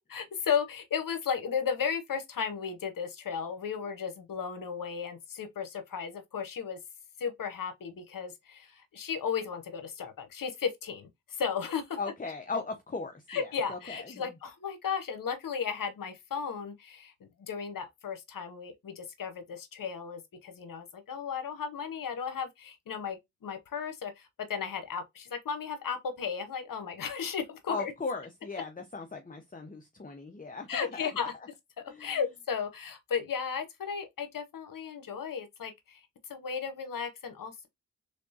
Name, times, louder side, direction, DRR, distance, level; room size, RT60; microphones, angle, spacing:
voice 1, 0.1-6.8 7.2-8.3 8.9-11.1 11.4-11.8 13.3-17.1 17.5-23.2 23.4-24.1 24.5-27.9 30.7-31.3 32.0-35.7 36.3-37.7, left 6 dB, 85° left, 0.8 m, -34 dB
voice 2, 12.0-14.0 27.7-31.3 31.9-32.1, left 4 dB, 25° left, 0.8 m, -38 dB
3.5 x 3.4 x 2.7 m
cardioid pair, 40°, 33 cm